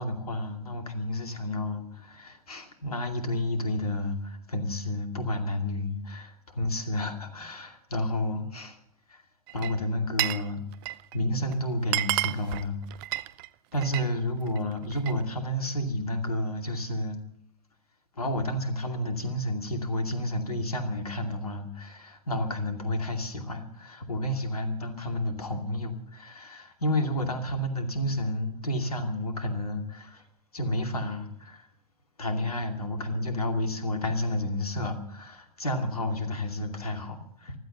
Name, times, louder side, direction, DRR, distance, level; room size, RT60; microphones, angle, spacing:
voice 1, 0.0-8.8 9.1-9.2 9.5-10.6 11.1-12.8 13.7-17.2 18.2-30.2 30.5-31.7 32.2-37.5, left 1 dB, 80° left, 6 dB, 2.6 m, -31 dB
Glass, 9.5-10.5 10.7-11.2 11.5-11.6 11.8-14.1 14.5-15.2, right 19 dB, 40° right, 0.6 m, -31 dB
15.5 x 13.0 x 7.1 m, 0.66 s
figure-of-eight pair, 100°, 19 cm